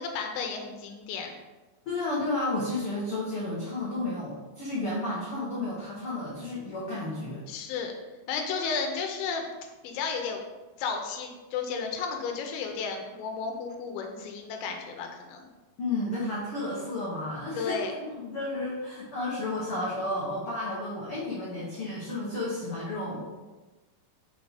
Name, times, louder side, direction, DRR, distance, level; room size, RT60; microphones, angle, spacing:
voice 1, 0.0-1.3 7.5-7.9 8.3-9.5 9.8-10.4 10.8-15.5 17.6-17.9, left 5 dB, 90° left, 3 dB, 2.7 m, -33 dB
voice 2, 1.8-7.4 15.8-23.2, left 2 dB, 70° left, -7 dB, 1.3 m, -32 dB
5.6 x 4.6 x 4.1 m, 1.2 s
omnidirectional pair, 4.3 m